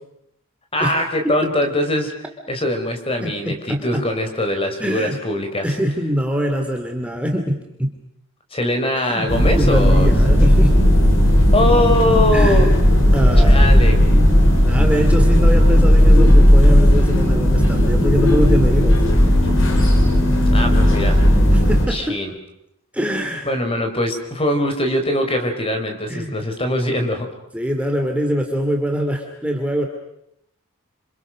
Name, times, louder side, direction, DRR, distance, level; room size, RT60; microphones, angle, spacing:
voice 1, 0.7-2.2 2.5-5.7 8.5-10.1 11.5-12.7 13.4-14.0 20.5-21.2 21.9-22.3 23.4-27.3, left 1 dB, 25° left, 5 dB, 4.4 m, -22 dB
voice 2, 3.2-4.0 4.8-5.2 5.6-7.9 9.1-9.3 9.6-10.8 12.3-12.7 13.1-13.7 14.6-19.0 21.5-22.2 22.9-23.5 26.1-26.3 27.5-29.9, equal, 5° right, 3 dB, 2.7 m, -23 dB
sound 1, 9.3-21.9, equal, 65° left, 5.6 m, -14 dB
27.5 x 27.5 x 6.5 m, 0.78 s
head